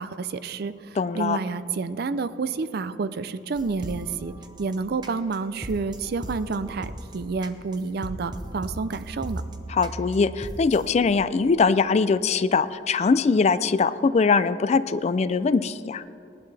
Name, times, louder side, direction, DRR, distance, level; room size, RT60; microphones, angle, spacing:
voice 1, 0.0-4.3 4.6-9.4, right 4 dB, 55° right, 14 dB, 0.4 m, -29 dB
voice 2, 1.0-1.4 9.7-16.0, left 4 dB, 35° left, 15 dB, 0.3 m, -22 dB
sound 1, 3.5-10.9, right 1 dB, 25° right, 0.8 m, -38 dB
19.0 x 11.5 x 3.3 m, 2.5 s
head